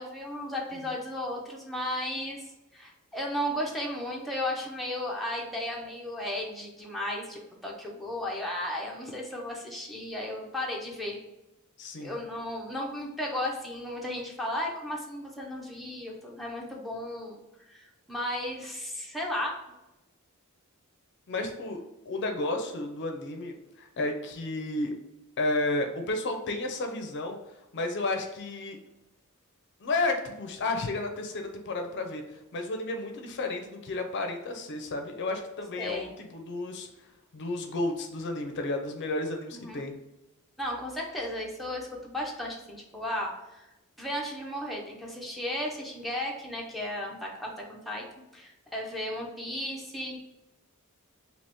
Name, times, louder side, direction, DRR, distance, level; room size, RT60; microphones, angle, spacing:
voice 1, 0.0-2.4 2.7-11.2 12.0-17.4 17.7-19.5 35.8-36.1 39.5-39.8 40.6-43.7 44.0-48.1 48.3-50.2, left 1 dB, ahead, -3 dB, 0.5 m, -34 dB
voice 2, 11.8-12.2 21.3-24.9 25.4-27.4 27.7-28.8 29.8-32.2 32.5-36.9 37.3-40.0, left 2 dB, 55° left, 4 dB, 0.5 m, -32 dB
2.9 x 2.7 x 3.4 m, 0.99 s
head